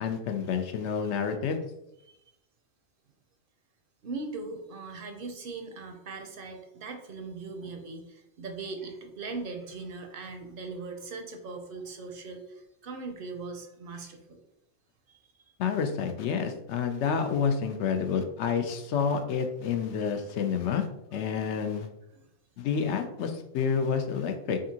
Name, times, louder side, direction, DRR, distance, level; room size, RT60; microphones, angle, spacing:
voice 1, 0.0-1.6 15.6-21.9 22.6-24.6, left 6 dB, 85° left, 6 dB, 0.9 m, -29 dB
voice 2, 4.0-14.4 15.1-15.5 22.6-22.8, right 3 dB, 60° right, 5 dB, 0.7 m, -40 dB
5.1 x 2.6 x 2.8 m, 0.84 s
omnidirectional pair, 1.1 m